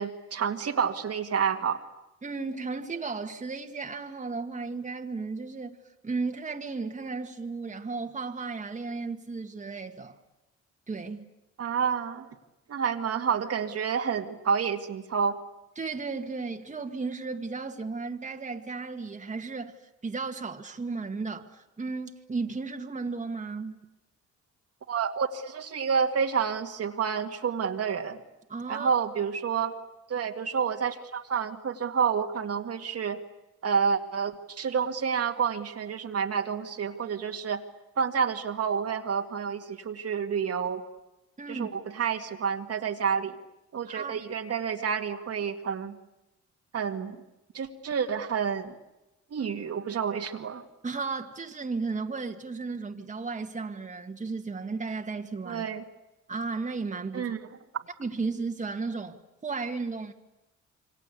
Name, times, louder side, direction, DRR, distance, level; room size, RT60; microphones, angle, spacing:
voice 1, 0.0-1.8 11.6-12.3 12.7-15.4 24.9-28.2 28.7-29.7 30.1-33.2 33.6-37.6 38.0-40.8 41.5-43.4 43.7-46.0 46.7-47.2 47.5-48.7 49.3-50.6 55.5-55.8 57.1-57.4 57.7-57.8, right 6 dB, 55° right, 2.2 m, -29 dB
voice 2, 2.2-5.8 6.0-10.2 10.9-11.3 15.8-19.7 20.0-23.8 28.5-28.9 41.4-41.7 43.9-44.2 50.8-55.7 56.3-57.3 58.0-59.2 59.4-60.1, right 4 dB, 25° right, 2.0 m, -34 dB
27.5 x 24.0 x 8.5 m
cardioid pair, 90°, 30 cm